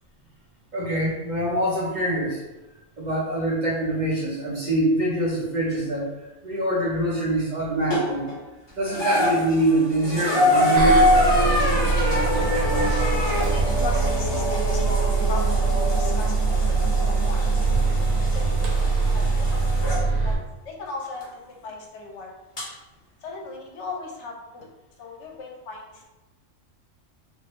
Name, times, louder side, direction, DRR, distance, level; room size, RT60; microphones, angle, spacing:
voice 1, 0.7-2.4 3.0-6.1 6.4-8.3 8.8-11.1, right 1 dB, 50° right, -5 dB, 0.5 m, -24 dB
sound 1, 7.9-8.4 8.9-20.1 21.2-21.3 22.6-22.7, left 1 dB, 30° left, 0.5 m, -25 dB
Bus, 10.8-20.4, right 4 dB, 90° right, 1.0 m, -23 dB
voice 2, 12.9-16.4 17.0-17.4 17.8-18.1 18.3-19.8 20.2-20.4 20.6-22.3 23.2-24.7 25.0-26.1, left 3 dB, 70° left, 0 dB, 0.8 m, -37 dB
3.0 x 2.4 x 3.0 m, 1.0 s
omnidirectional pair, 1.4 m